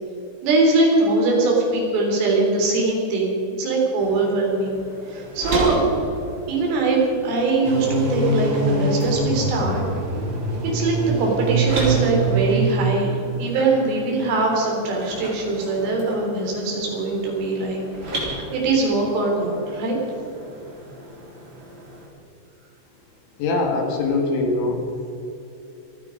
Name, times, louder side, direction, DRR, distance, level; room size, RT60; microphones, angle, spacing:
voice 1, 0.4-4.8 5.1-5.8 6.5-9.8 10.6-17.8 18.0-20.0, right 3 dB, 75° right, -1 dB, 6.1 m, -22 dB
sound 1, 4.0-22.1, right 1 dB, 25° right, 3.6 m, -34 dB
sound 2, 7.6-12.9, right 2 dB, 55° right, 1.5 m, -23 dB
voice 2, 23.4-24.8, left 3 dB, 70° left, 2 dB, 4.3 m, -22 dB
27.0 x 10.0 x 5.2 m, 2.8 s
omnidirectional pair, 5.8 m